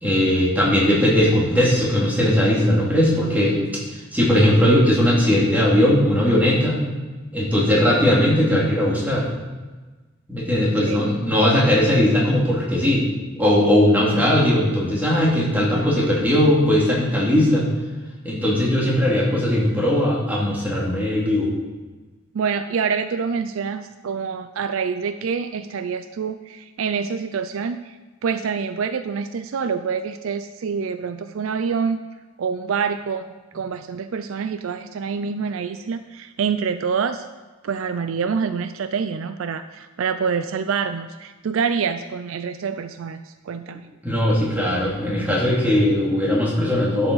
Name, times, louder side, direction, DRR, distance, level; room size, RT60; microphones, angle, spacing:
voice 1, 0.0-3.6 4.1-6.8 7.3-9.3 10.3-13.0 13.4-17.6 18.2-21.5 44.0-47.1, left 1 dB, 10° right, -5 dB, 2.4 m, -19 dB
voice 2, 22.3-28.0 28.2-32.0 32.4-33.2 33.5-37.3 37.6-43.9, right 6 dB, 65° right, 10 dB, 0.4 m, -26 dB
11.5 x 7.1 x 4.0 m, 1.2 s
head